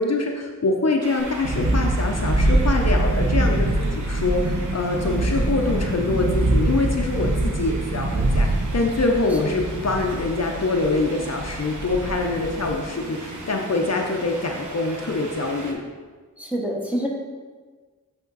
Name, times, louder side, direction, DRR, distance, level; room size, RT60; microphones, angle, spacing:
voice 1, 0.0-15.8, left 3 dB, 50° left, 2 dB, 0.6 m, -24 dB
sound 1, 1.0-15.7, right 2 dB, 65° right, 1.0 m, -39 dB
Thunderstorm, 1.2-12.8, right 1 dB, 85° right, 1.0 m, -24 dB
voice 2, 16.4-17.1, equal, 5° right, -2 dB, 1.0 m, -27 dB
8.2 x 3.5 x 4.0 m, 1.4 s
wide cardioid pair, 80°, 33 cm